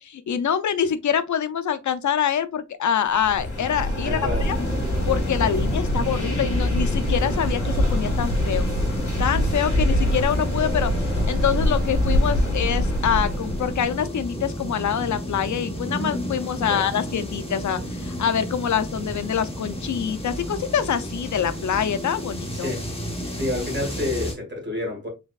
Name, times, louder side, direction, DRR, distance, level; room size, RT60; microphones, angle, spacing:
voice 1, 0.0-4.6 5.1-8.7 9.2-22.7, left 8 dB, 75° left, 0.5 m, -25 dB
sound 1, 3.1-14.0, left 1 dB, 50° left, 2.0 m, -24 dB
voice 2, 4.0-4.5 16.7-16.9 22.5-22.9 23.4-25.1, left 1 dB, 40° right, 1.7 m, -29 dB
sound 2, 4.4-24.3, equal, 20° left, 1.1 m, -32 dB
4.4 x 3.4 x 2.3 m
wide cardioid pair, 170°, 29 cm